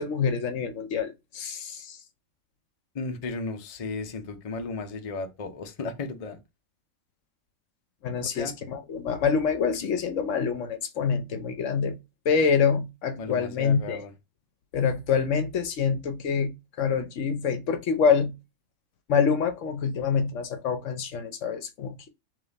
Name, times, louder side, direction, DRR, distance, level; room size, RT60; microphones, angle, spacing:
voice 1, 0.0-2.0 8.0-12.0 12.2-14.0 14.7-18.3 19.1-22.1, left 6 dB, 70° left, 1.1 m, -26 dB
voice 2, 2.9-6.4 8.3-8.5 13.2-14.1, left 3 dB, 35° left, 0.6 m, -34 dB
3.6 x 3.2 x 3.9 m
omnidirectional pair, 1.4 m